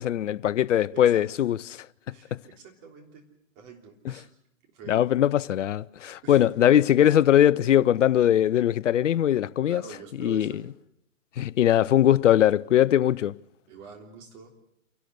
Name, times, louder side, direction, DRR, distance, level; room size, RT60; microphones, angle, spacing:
voice 1, 0.0-1.9 4.9-9.8 10.2-10.5 11.4-13.4, left 11 dB, 60° left, 0.7 m, -21 dB
voice 2, 0.9-1.4 2.1-3.2 3.6-4.3 4.7-5.0 6.2-6.5 9.7-10.7 11.7-12.2 13.7-14.5, right 6 dB, 25° right, 3.5 m, -46 dB
28.0 x 12.0 x 7.9 m
hypercardioid pair, 140°, 43 cm